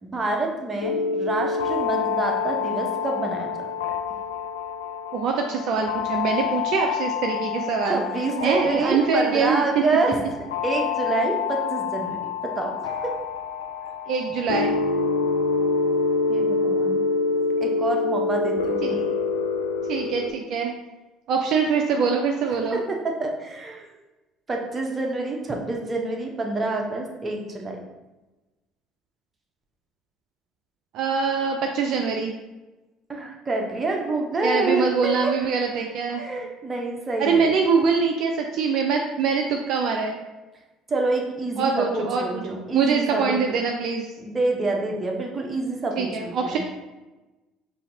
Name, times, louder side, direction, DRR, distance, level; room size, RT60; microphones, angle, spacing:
voice 1, 0.0-3.7 7.9-10.2 10.6-12.2 12.4-13.1 16.3-17.0 17.6-19.0 22.7-23.9 24.5-27.8 33.1-35.3 36.2-37.5 40.9-43.4 44.2-46.6, right 2 dB, 25° right, 1 dB, 0.9 m, -27 dB
sound 1, 0.8-20.3, left 4 dB, 80° left, 0.3 m, -27 dB
voice 2, 5.1-8.0 8.4-9.6 14.1-14.7 18.8-19.1 19.9-20.7 21.3-22.8 30.9-32.3 34.4-36.2 37.2-40.2 41.6-42.4 42.7-44.1 46.0-46.6, right 5 dB, 60° right, 2 dB, 0.4 m, -24 dB
5.6 x 2.7 x 2.7 m, 1.1 s
hypercardioid pair, 60°, 0 cm